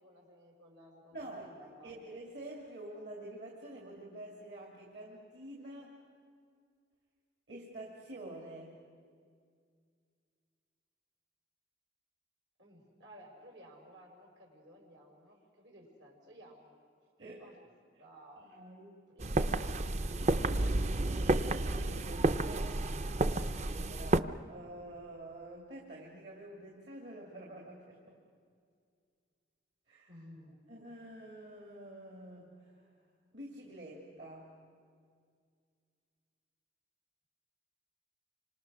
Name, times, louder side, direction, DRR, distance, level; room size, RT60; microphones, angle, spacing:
voice 1, 0.0-2.0 12.6-16.7 17.4-17.6 18.0-18.5 19.1-21.2 30.1-30.6, equal, 85° right, 1 dB, 5.6 m, -56 dB
voice 2, 1.1-1.5 1.8-6.0 7.5-8.7 17.2-17.5 18.4-19.0 21.6-22.9 23.3-28.2 29.9-30.1 30.7-32.9 33.3-34.5, right 1 dB, 65° right, -1 dB, 2.9 m, -48 dB
sound 1, 19.2-24.2, right 2 dB, 35° right, 0.5 m, -31 dB
27.5 x 25.5 x 6.5 m, 2.1 s
head